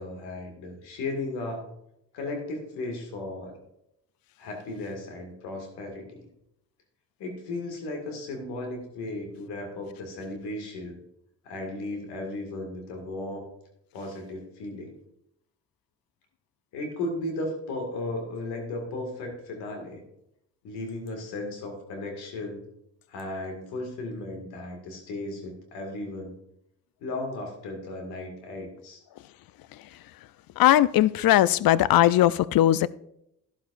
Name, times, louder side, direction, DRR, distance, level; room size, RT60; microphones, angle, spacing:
voice 1, 0.0-1.7 2.1-3.6 4.4-6.3 7.2-11.0 11.4-13.5 13.9-14.9 16.7-20.0 20.6-22.6 23.1-26.3 27.0-29.0, left 2 dB, 90° left, 2 dB, 2.1 m, -35 dB
voice 2, 30.6-32.9, left 13 dB, 65° left, 19 dB, 0.5 m, -19 dB
12.0 x 11.5 x 2.6 m, 0.78 s
hypercardioid pair, 40°, 38 cm